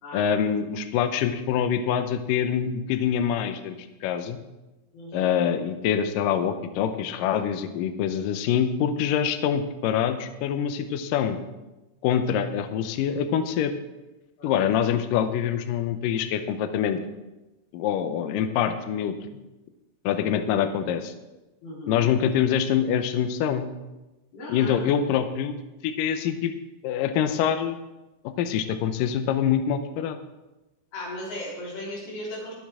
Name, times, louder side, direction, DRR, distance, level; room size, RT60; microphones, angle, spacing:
voice 1, 0.1-4.4 5.1-11.4 12.0-13.7 14.4-17.0 17.7-19.2 20.0-21.1 21.9-23.7 24.5-25.6 25.8-26.5 26.8-27.8 28.2-30.2, left 8 dB, 85° left, 9 dB, 1.9 m, -25 dB
voice 2, 4.9-5.3 14.4-14.5 21.6-22.0 24.3-24.9 30.9-32.5, left 1 dB, 60° left, -5 dB, 5.4 m, -36 dB
22.0 x 7.4 x 3.7 m, 1.0 s
omnidirectional pair, 4.9 m